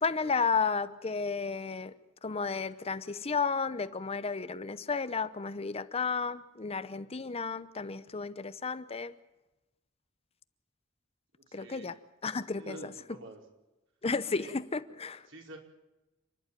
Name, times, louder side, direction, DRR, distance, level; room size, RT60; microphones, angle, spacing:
voice 1, 0.0-1.9 2.2-9.1 11.5-12.9 14.0-15.2, left 5 dB, 30° left, 0.7 m, -33 dB
voice 2, 11.4-11.9 12.5-13.4 14.3-14.5 15.3-15.6, right 2 dB, 70° right, 5.0 m, -47 dB
29.0 x 11.5 x 9.1 m
head